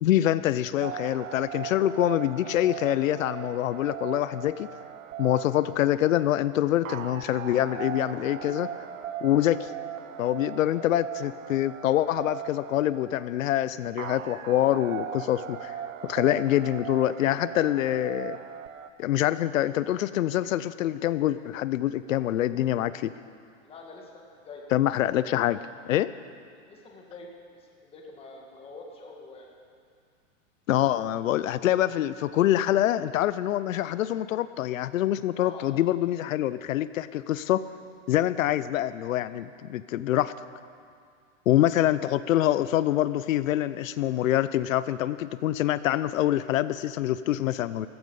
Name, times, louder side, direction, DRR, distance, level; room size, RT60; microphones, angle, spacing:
voice 1, 0.0-4.7 5.2-8.7 9.2-9.7 10.2-15.8 16.0-18.4 19.0-23.1 24.7-25.6 25.9-26.1 30.7-37.6 38.1-40.3 41.5-47.9, left 13 dB, 90° left, 15 dB, 0.6 m, -25 dB
sound 1, 0.8-18.9, right 10 dB, 85° right, 1.0 m, -39 dB
voice 2, 23.6-24.6 26.5-29.5 35.4-35.8 47.5-47.9, left 3 dB, 15° left, 0 dB, 1.7 m, -46 dB
15.0 x 14.0 x 5.4 m, 2.2 s
supercardioid pair, 160°, 39 cm